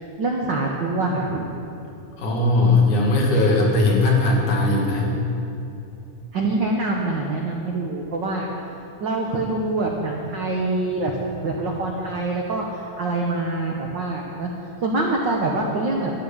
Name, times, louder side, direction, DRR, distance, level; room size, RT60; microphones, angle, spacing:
voice 1, 0.2-1.5 6.3-8.5 9.0-11.1 11.4-14.5 14.8-16.1, right 2 dB, 80° right, -1 dB, 1.0 m, -25 dB
voice 2, 2.2-5.1, left 2 dB, 70° left, -2 dB, 3.3 m, -19 dB
12.5 x 7.2 x 9.9 m, 2.7 s
omnidirectional pair, 3.7 m